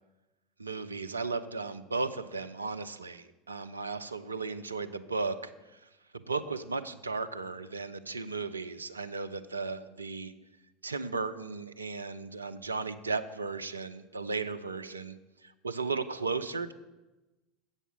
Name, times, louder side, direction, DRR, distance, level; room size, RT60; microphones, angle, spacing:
voice 1, 0.6-10.3 10.8-15.2 15.4-16.7, right 4 dB, 80° right, 9 dB, 0.4 m, -35 dB
8.0 x 5.4 x 7.3 m, 1.1 s
figure-of-eight pair, 75°, 0 cm